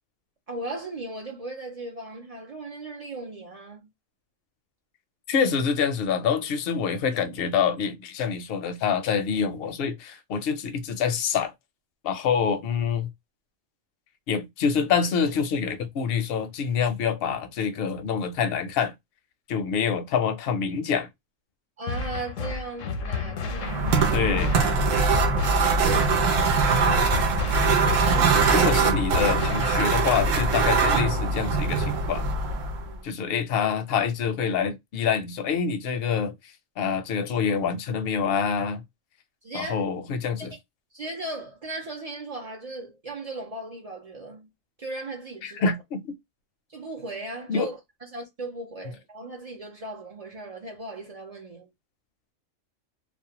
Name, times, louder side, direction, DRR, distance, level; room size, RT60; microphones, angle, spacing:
voice 1, 0.5-3.9 21.8-24.3 25.2-26.5 28.0-28.4 32.7-33.1 39.4-39.8 40.4-40.5 40.9-44.5 44.8-45.7 46.7-51.7, right 2 dB, 45° right, 0.5 m, -37 dB
voice 2, 5.3-11.5 12.0-13.1 14.3-18.9 19.5-21.1 24.1-24.6 28.5-32.2 33.0-36.3 36.8-38.8 39.5-40.5 45.4-46.0 47.5-47.7, left 6 dB, 60° left, 0.6 m, -26 dB
sound 1, 21.9-29.9, left 4 dB, 80° left, 1.0 m, -32 dB
sound 2, 23.5-32.9, right 4 dB, 80° right, 1.0 m, -22 dB
2.5 x 2.1 x 2.8 m
omnidirectional pair, 1.3 m